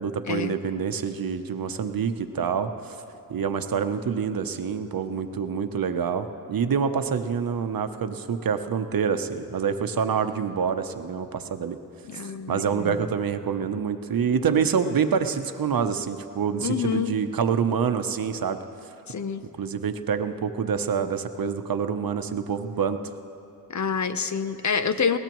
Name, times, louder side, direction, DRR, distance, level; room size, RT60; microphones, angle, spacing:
voice 1, 0.0-3.0 3.3-11.8 12.1-12.2 12.5-18.6 19.6-23.0, right 6 dB, 75° right, 8 dB, 0.8 m, -26 dB
voice 2, 12.1-13.1 16.6-17.2 19.1-19.4 23.7-25.2, left 6 dB, 55° left, 10 dB, 0.8 m, -27 dB
20.5 x 17.5 x 3.1 m, 2.8 s
wide cardioid pair, 70°, 35 cm